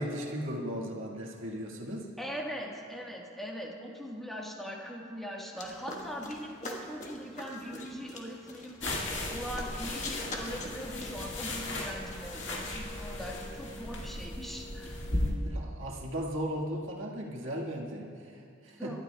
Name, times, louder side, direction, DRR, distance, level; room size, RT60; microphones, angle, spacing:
voice 1, 0.0-2.1 15.1-19.0, equal, 75° right, -2 dB, 1.6 m, -37 dB
voice 2, 2.2-8.8 9.3-15.0 18.8-19.0, equal, ahead, -2 dB, 1.4 m, -41 dB
sound 1, 5.6-12.3, left 2 dB, 35° left, 1.4 m, -44 dB
sound 2, 8.8-15.3, left 1 dB, 65° left, 2.0 m, -36 dB
25.5 x 12.0 x 2.3 m, 2.3 s
head